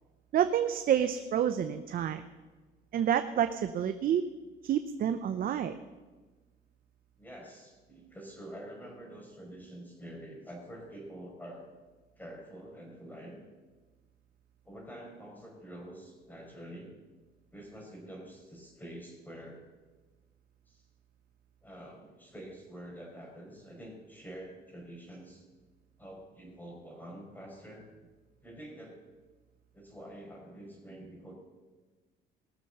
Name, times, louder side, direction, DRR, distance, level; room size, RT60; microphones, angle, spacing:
voice 1, 0.3-2.2 2.9-4.2 4.6-5.8, right 9 dB, 50° right, 9 dB, 0.7 m, -28 dB
voice 2, 7.2-11.6 12.2-13.4 14.6-17.0 17.5-19.6 20.7-20.8 21.6-25.4 26.0-27.9 28.4-29.0 29.7-31.3, right 1 dB, 10° left, 0 dB, 4.9 m, -47 dB
18.5 x 6.9 x 6.7 m, 1.3 s
cardioid pair, 100°, 18 cm